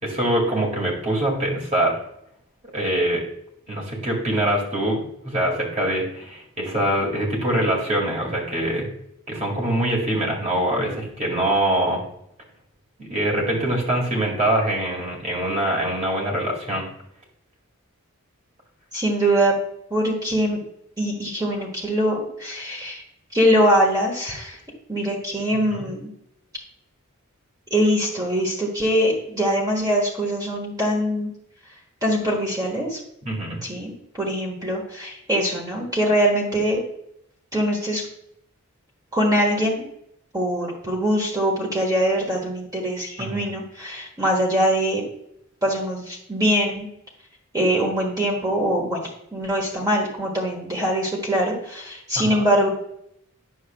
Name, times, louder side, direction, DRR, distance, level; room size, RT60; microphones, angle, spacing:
voice 1, 0.0-2.0 2.7-3.2 3.7-8.9 9.3-12.0 13.0-16.8 25.7-25.8 33.2-33.6 43.2-43.5 52.2-52.4, right 1 dB, 35° right, -1 dB, 2.0 m, -24 dB
voice 2, 18.9-19.5 19.9-20.6 21.0-23.0 23.3-24.6 24.9-26.1 27.7-31.3 32.0-33.0 33.6-36.8 37.5-38.0 39.1-39.8 40.3-45.0 45.6-46.9 47.5-49.0 49.3-52.7, equal, 15° right, -2 dB, 1.3 m, -22 dB
9.5 x 6.5 x 2.2 m, 0.75 s
head